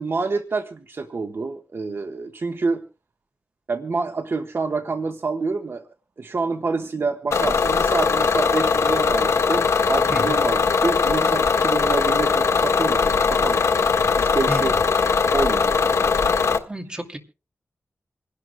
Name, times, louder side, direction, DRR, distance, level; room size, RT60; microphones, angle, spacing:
voice 1, 0.0-2.8 3.7-5.8 6.2-13.8 14.2-14.8 15.3-16.4, right 4 dB, 50° right, 7 dB, 1.2 m, -27 dB
Bus / Engine, 7.3-16.6, left 5 dB, 75° left, 1.5 m, -20 dB
voice 2, 14.5-14.8 16.7-17.2, right 1 dB, 20° right, 5 dB, 2.4 m, -31 dB
27.0 x 11.5 x 2.2 m, 0.32 s
wide cardioid pair, 105°, 5 cm